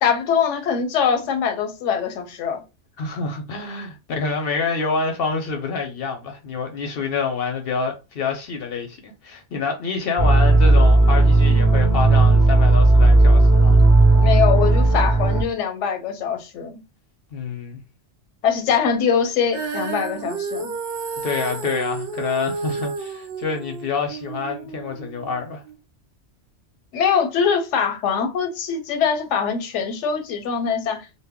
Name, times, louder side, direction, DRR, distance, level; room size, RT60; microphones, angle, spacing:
voice 1, 0.0-2.6 14.1-16.8 18.4-20.7 26.9-31.1, left 7 dB, 85° left, 0.9 m, -23 dB
voice 2, 3.0-13.8 17.3-17.8 21.2-25.6, left 4 dB, 65° left, 0.7 m, -27 dB
sound 1, 10.2-15.4, right 2 dB, 20° left, 0.5 m, -14 dB
Female singing, 19.5-25.7, right 4 dB, 60° right, 0.7 m, -31 dB
2.1 x 2.1 x 3.4 m
omnidirectional pair, 1.2 m